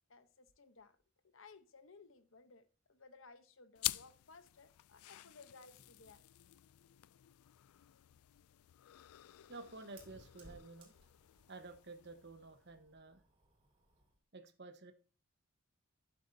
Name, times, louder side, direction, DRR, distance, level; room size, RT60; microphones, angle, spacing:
voice 1, 0.1-1.0 1.2-6.2, left 4 dB, 60° left, 0.9 m, -60 dB
sound 1, 3.8-12.7, left 18 dB, 85° left, 0.3 m, -48 dB
Fire, 8.1-14.2, right 1 dB, 25° right, 2.9 m, -65 dB
voice 2, 9.5-10.9 11.5-13.2 14.3-14.9, right 3 dB, 50° right, 1.2 m, -52 dB
11.5 x 8.5 x 2.7 m
head